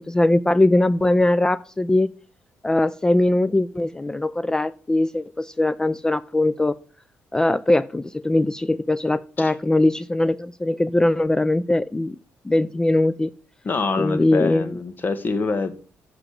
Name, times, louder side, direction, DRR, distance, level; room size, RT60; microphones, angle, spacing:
voice 1, 0.0-2.1 2.6-6.7 7.3-12.2 12.4-13.3 14.0-14.7, left 2 dB, 15° left, 17 dB, 0.3 m, -21 dB
voice 2, 13.6-15.7, left 4 dB, 40° left, 11 dB, 1.3 m, -25 dB
7.8 x 5.0 x 6.3 m, 0.39 s
cardioid pair, 85°, 5 cm